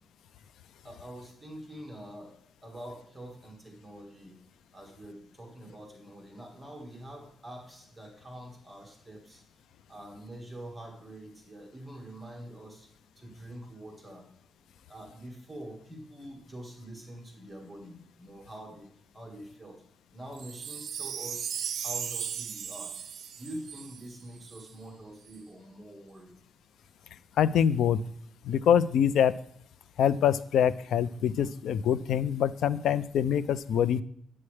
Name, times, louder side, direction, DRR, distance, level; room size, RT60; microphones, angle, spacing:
voice 1, 0.8-4.4 4.7-9.4 9.9-12.9 13.2-14.3 14.9-19.8 20.1-21.5 21.8-23.0 23.4-26.4 31.4-31.5, right 1 dB, 10° right, 0 dB, 1.8 m, -45 dB
Wind chime, 20.3-24.7 25.3-25.4, right 8 dB, 70° right, 0.5 m, -37 dB
voice 2, 27.4-28.0 28.4-29.3 30.0-34.0, left 9 dB, 90° left, 16 dB, 0.4 m, -25 dB
9.7 x 8.6 x 3.3 m, 0.65 s
cardioid pair, 140°, 0 cm